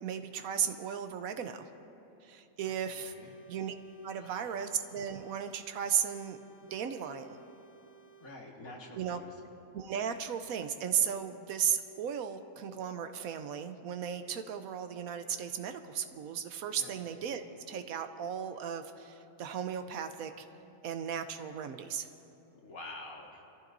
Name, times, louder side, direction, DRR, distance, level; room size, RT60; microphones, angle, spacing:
voice 1, 0.0-1.7 2.2-3.1 3.5-3.7 4.0-6.4 6.7-7.4 8.9-9.2 9.7-17.4 17.7-20.4 20.8-22.1, right 8 dB, 90° right, 8 dB, 1.2 m, -35 dB
voice 2, 2.6-3.3 4.1-4.6 8.2-9.3 16.7-17.0 22.5-23.4, left 2 dB, 85° left, -1 dB, 2.2 m, -48 dB
sound 1, 2.7-8.4, right 5 dB, 50° left, 1.5 m, -58 dB
26.0 x 14.5 x 2.7 m, 2.9 s
omnidirectional pair, 1.4 m